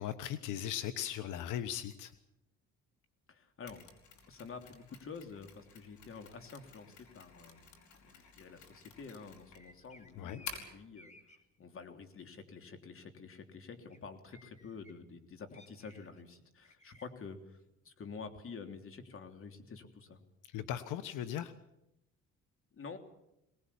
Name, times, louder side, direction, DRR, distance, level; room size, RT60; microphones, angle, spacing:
voice 1, 0.0-2.1 10.1-10.4 20.4-21.5, left 10 dB, 90° left, 11 dB, 1.2 m, -38 dB
voice 2, 3.3-3.9 4.3-7.7 8.0-11.1 11.6-17.6 17.8-20.2 22.7-23.0, left 5 dB, 45° left, 6 dB, 3.4 m, -49 dB
Mechanisms, 3.7-10.8, left 5 dB, 70° left, 5.2 m, -52 dB
blackbird in blackforest, 9.5-11.4 13.9-14.0 14.3-14.9 15.5-16.2 16.6-17.0, left 1 dB, 25° left, 4.5 m, -60 dB
23.5 x 19.5 x 8.6 m, 0.87 s
cardioid pair, 105°, 30 cm